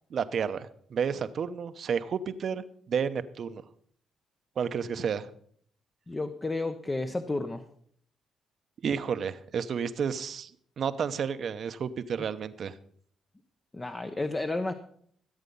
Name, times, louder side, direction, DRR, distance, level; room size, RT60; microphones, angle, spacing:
voice 1, 0.1-3.6 4.6-5.3 8.8-10.5 10.8-12.8, right 7 dB, 55° right, 12 dB, 0.8 m, -31 dB
voice 2, 6.1-7.6 13.7-14.7, left 2 dB, 20° left, 8 dB, 0.8 m, -31 dB
15.0 x 8.1 x 5.4 m, 0.63 s
cardioid pair, 90°, 0 cm